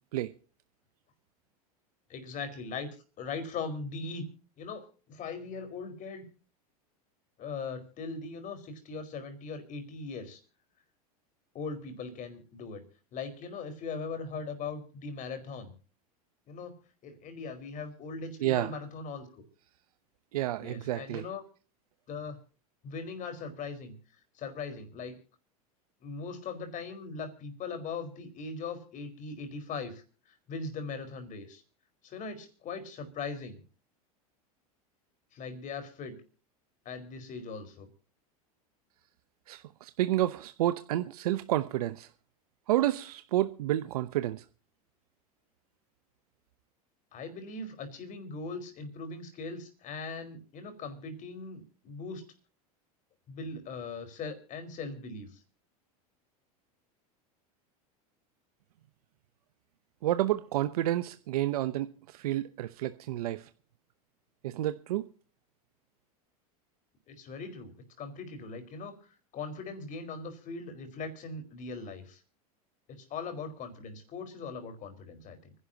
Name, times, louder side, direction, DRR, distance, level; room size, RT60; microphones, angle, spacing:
voice 1, 2.1-2.9 3.2-4.2 4.6-6.3 7.4-10.4 11.5-12.8 13.1-15.7 16.5-16.7 17.0-19.4 20.6-21.4 22.1-22.4 22.8-23.9 24.4-25.1 26.0-31.6 32.0-33.6 35.3-36.1 36.8-37.9 47.1-52.2 53.3-55.4 67.1-72.2 72.9-75.5, left 4 dB, 45° left, 4.7 m, -40 dB
voice 2, 18.4-18.7 20.3-21.2 39.5-42.1 42.7-44.4 60.0-63.5 64.4-65.1, right 14 dB, 80° right, 0.9 m, -30 dB
29.5 x 11.0 x 2.9 m
hypercardioid pair, 105°, 19 cm